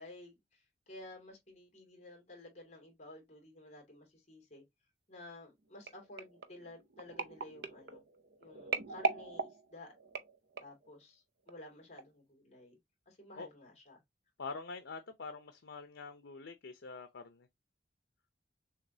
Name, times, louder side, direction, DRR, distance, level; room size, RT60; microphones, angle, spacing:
voice 1, 0.0-4.6 5.1-8.0 8.4-9.9 10.6-12.8 13.1-14.0, left 1 dB, 40° left, 2.6 m, -53 dB
sound 1, 5.9-10.9 11.5-11.7 12.0-12.1, right 4 dB, 60° right, 0.7 m, -40 dB
voice 2, 14.4-17.5, left 4 dB, 85° left, 0.7 m, -45 dB
6.4 x 3.0 x 2.7 m
head